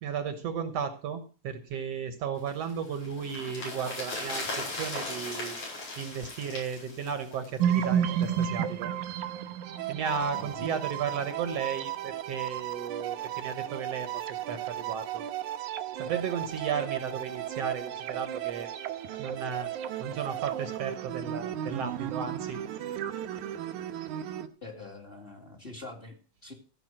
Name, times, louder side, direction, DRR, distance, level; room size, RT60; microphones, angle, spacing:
voice 1, 0.0-5.6 6.0-8.9 9.9-15.3 16.0-18.7 19.1-19.7 20.0-22.6, right 7 dB, 65° right, 9 dB, 2.0 m, -34 dB
sound 1, 2.5-7.9 8.2-8.3, left 2 dB, 75° left, 6.4 m, -38 dB
sound 2, 7.6-24.5, right 10 dB, 85° right, 2.4 m, -33 dB
voice 2, 10.3-10.8 24.6-26.5, left 2 dB, 20° left, 3 dB, 2.2 m, -44 dB
15.0 x 6.0 x 7.5 m, 0.37 s
omnidirectional pair, 3.4 m